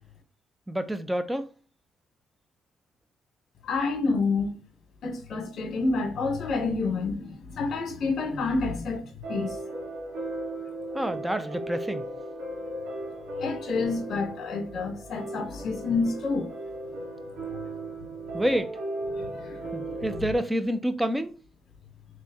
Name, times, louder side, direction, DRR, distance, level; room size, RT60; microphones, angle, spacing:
voice 1, 0.7-1.5 10.9-12.1 18.3-18.8 19.7-21.4, equal, 10° right, 0.5 m, -28 dB
voice 2, 3.6-4.6 5.0-9.6 13.4-16.5 17.5-17.6 19.1-20.1, left 3 dB, 60° left, 1.0 m, -29 dB
sound 1, 9.2-20.2, right 2 dB, 85° right, 1.4 m, -36 dB
3.1 x 2.8 x 3.5 m
cardioid pair, 90°, 0 cm